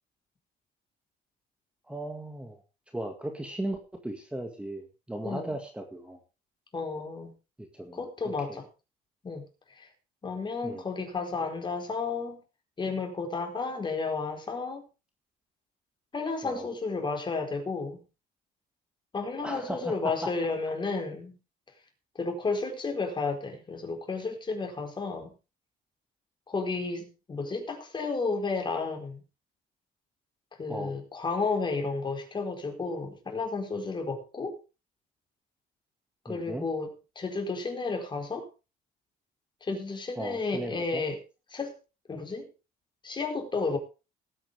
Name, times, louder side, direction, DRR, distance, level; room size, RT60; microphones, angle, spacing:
voice 1, 1.9-2.6 2.9-6.2 7.6-8.0 8.5-8.6 10.6-10.8 16.4-16.7 19.4-20.3 30.7-31.0 36.3-36.7 40.2-41.0, right 1 dB, 5° right, 4 dB, 2.0 m, -36 dB
voice 2, 6.7-7.3 7.9-8.6 9.2-9.5 9.8-9.9 10.2-12.4 12.8-14.8 16.1-18.0 19.1-21.4 22.1-25.3 26.5-29.2 30.6-34.6 36.2-38.5 39.6-41.2 41.5-41.8 42.1-42.5 43.0-43.8, left 4 dB, 25° left, 4 dB, 4.2 m, -32 dB
19.0 x 8.9 x 3.5 m, 0.30 s
cardioid pair, 110°, 17 cm